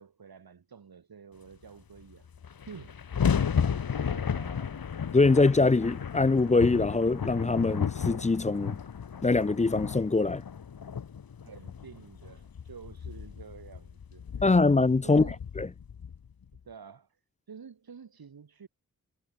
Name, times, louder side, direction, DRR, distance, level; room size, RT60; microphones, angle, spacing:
voice 1, 0.0-3.0 3.7-4.8 11.4-14.5 15.0-15.4 16.6-17.2 17.5-18.7, right 6 dB, 80° right, 4.5 m, -49 dB
sound 1, 2.0-2.1 2.2-16.6, left 7 dB, 75° left, 1.7 m, -34 dB
voice 2, 5.1-8.8 9.2-10.4 14.4-15.3 15.6-15.7, left 3 dB, 20° left, 0.5 m, -23 dB
cardioid pair, 65°, 36 cm